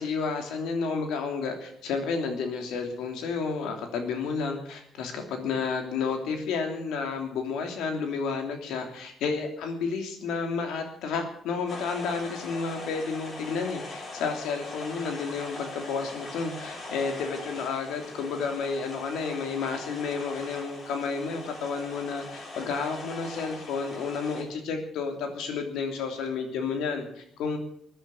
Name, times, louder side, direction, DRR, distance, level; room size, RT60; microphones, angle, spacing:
voice 1, 0.0-27.6, left 5 dB, 90° left, 4 dB, 3.0 m, -31 dB
sound 1, 11.7-24.4, left 3 dB, 50° left, 7.0 m, -41 dB
15.0 x 10.0 x 8.4 m, 0.67 s
cardioid pair, 90°, 0 cm